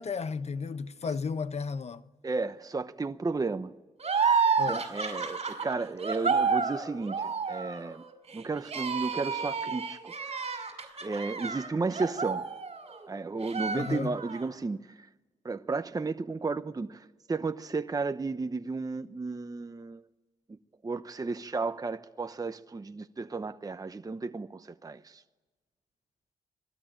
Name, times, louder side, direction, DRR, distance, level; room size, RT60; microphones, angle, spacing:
voice 1, 0.0-2.0 4.6-4.9 13.7-14.2, left 5 dB, 45° left, 1.1 m, -33 dB
voice 2, 2.2-3.7 4.7-8.0 8.3-10.1 10.4-10.5 11.0-12.4 13.1-15.1 15.4-20.0 20.8-25.2, right 3 dB, 25° right, 0.9 m, -33 dB
sound 1, 4.0-13.1 13.4-14.5, right 5 dB, 45° right, 5.1 m, -30 dB
26.5 x 18.5 x 9.0 m
cardioid pair, 70°, 15 cm